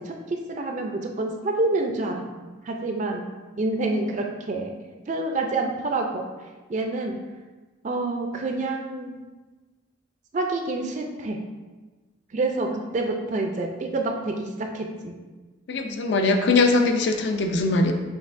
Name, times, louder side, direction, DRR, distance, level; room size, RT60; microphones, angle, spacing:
voice 1, 0.0-2.2 2.6-3.3 3.6-4.7 5.1-6.2 6.7-7.2 7.8-9.2 10.3-11.4 12.3-15.1, right 2 dB, 35° right, 3 dB, 0.3 m, -27 dB
voice 2, 15.7-17.9, left 3 dB, 55° left, 5 dB, 0.4 m, -21 dB
6.3 x 3.3 x 2.5 m, 1.3 s
head